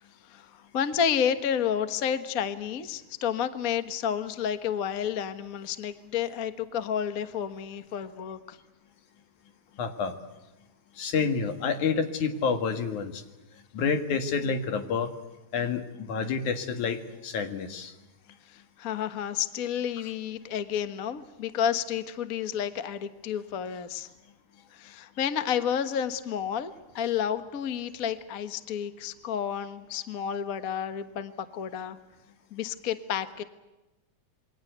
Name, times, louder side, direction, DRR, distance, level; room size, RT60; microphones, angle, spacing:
voice 1, 0.2-8.6 18.4-24.1 24.7-32.0 32.5-33.4, left 8 dB, 45° left, 10 dB, 1.1 m, -31 dB
voice 2, 9.8-10.1 11.0-13.2 13.7-15.1 15.5-17.9, left 5 dB, 85° left, 7 dB, 3.4 m, -28 dB
28.0 x 23.0 x 8.1 m, 1.0 s
omnidirectional pair, 3.4 m